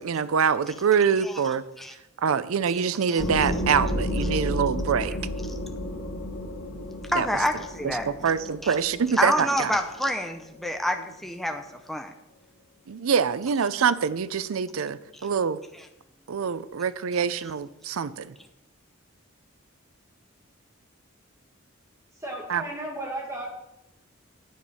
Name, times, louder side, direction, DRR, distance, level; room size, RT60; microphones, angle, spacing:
voice 1, 0.0-1.6 2.2-5.1 7.1-7.4 7.8-9.8 12.9-15.6 16.3-18.3 22.5-22.6, right 6 dB, 90° right, 16 dB, 0.5 m, -25 dB
sound 1, 3.2-10.6, equal, 75° left, 1.6 m, -32 dB
voice 2, 7.1-8.1 9.2-11.6 11.9-12.1, equal, ahead, 5 dB, 0.6 m, -27 dB
voice 3, 22.2-23.6, right 1 dB, 15° right, -1 dB, 2.1 m, -34 dB
9.4 x 8.0 x 5.5 m, 0.89 s
head